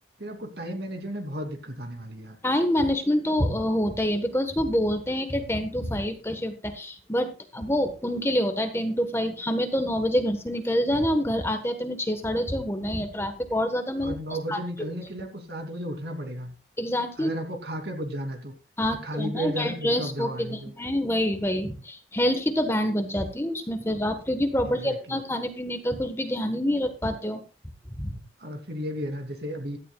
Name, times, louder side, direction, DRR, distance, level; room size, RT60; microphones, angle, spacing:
voice 1, 0.2-2.4 14.0-16.5 17.2-18.5 18.9-20.7 24.6-25.2 28.4-29.8, right 1 dB, 60° right, 4 dB, 2.8 m, -34 dB
voice 2, 2.4-14.2 14.5-14.6 16.8-17.3 18.8-27.4 28.0-28.1, equal, 15° left, 7 dB, 1.2 m, -26 dB
16.5 x 12.5 x 2.3 m, 0.33 s
head